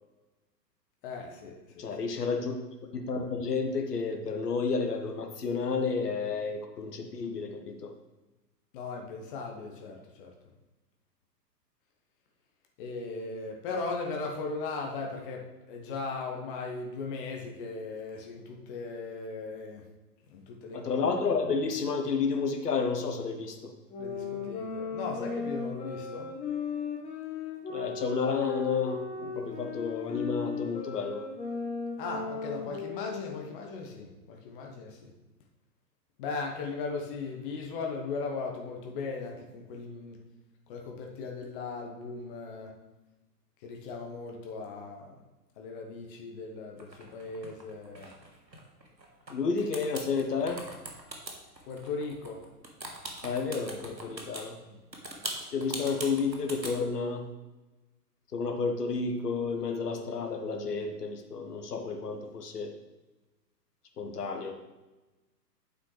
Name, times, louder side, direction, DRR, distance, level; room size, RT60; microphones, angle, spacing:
voice 1, 1.0-1.9 8.7-10.3 12.8-19.8 20.3-20.8 24.0-26.3 32.0-35.1 36.2-40.2 40.7-42.7 43.6-45.1 45.6-48.1 51.6-52.4 54.6-54.8, left 4 dB, 30° left, 1 dB, 1.2 m, -38 dB
voice 2, 1.8-2.5 2.9-7.9 20.7-23.7 27.7-31.2 49.3-50.6 53.2-54.6 55.5-57.2 58.3-62.7 64.0-64.5, left 4 dB, 65° left, 4 dB, 1.2 m, -31 dB
sound 1, 23.9-33.6, left 5 dB, 10° left, 1.4 m, -36 dB
sound 2, 46.8-49.3 49.6-54.4 54.9-56.8, right 1 dB, 90° right, 1.5 m, -41 dB
9.0 x 7.5 x 3.3 m, 1.1 s
figure-of-eight pair, 110°, 50 cm